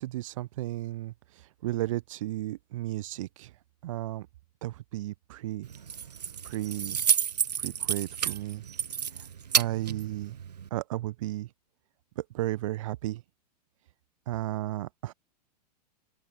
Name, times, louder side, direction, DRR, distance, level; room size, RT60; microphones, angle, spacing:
voice 1, 0.0-3.5 3.8-4.3 4.6-5.7 6.4-7.0 7.6-8.6 9.5-10.4 10.7-11.5 12.2-13.2 14.3-15.1, right 15 dB, 50° right, 1.4 m, -34 dB
Keys jangling, 5.6-10.7, right 8 dB, 70° right, 0.7 m, -30 dB
open air
figure-of-eight pair, 100°, 21 cm